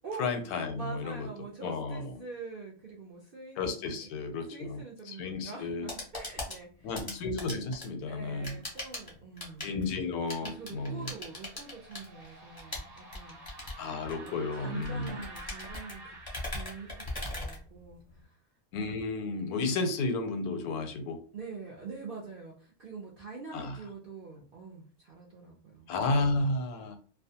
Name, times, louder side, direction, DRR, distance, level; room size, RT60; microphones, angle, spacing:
voice 1, 0.2-1.3 1.6-2.2 3.6-5.9 6.8-8.6 9.6-11.1 13.8-15.2 18.7-21.2 23.5-23.8 25.9-27.0, left 3 dB, 85° left, 7 dB, 1.1 m, -32 dB
voice 2, 0.8-4.1 4.5-7.1 8.1-9.8 10.4-13.4 14.2-16.2 16.5-18.4 21.3-25.9, right 4 dB, 65° right, -3 dB, 0.5 m, -45 dB
sound 1, 5.6-18.2, left 2 dB, 25° left, 0.5 m, -41 dB
sound 2, 9.5-17.2, right 2 dB, 35° right, 0.7 m, -50 dB
2.4 x 2.2 x 2.7 m, 0.40 s
omnidirectional pair, 1.5 m